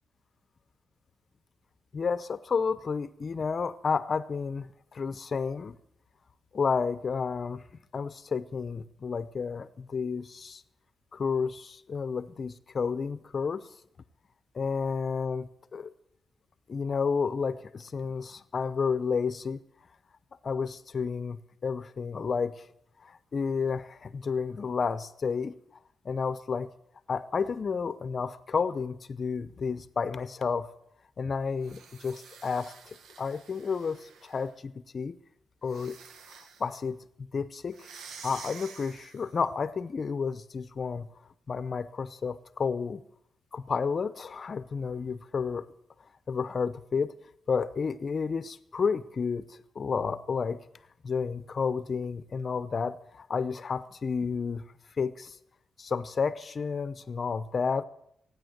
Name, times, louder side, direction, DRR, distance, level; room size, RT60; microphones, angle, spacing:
voice 1, 1.9-5.8 6.5-7.6 7.9-10.6 11.1-13.7 14.5-15.9 16.7-19.6 20.4-22.5 23.0-25.5 26.0-26.7 27.1-30.7 31.2-35.2 35.6-36.0 36.6-37.0 37.3-37.8 38.2-41.1 41.5-43.0 43.5-45.7 46.3-47.1 47.5-50.6 51.0-54.6 55.0-55.4 55.8-57.8, left 5 dB, 40° left, 14 dB, 0.7 m, -31 dB
sound 1, 31.6-34.6 35.6-36.8 37.7-39.4, right 6 dB, 80° right, 1.2 m, -49 dB
16.5 x 9.5 x 7.9 m, 0.73 s
cardioid pair, 130°, 0 cm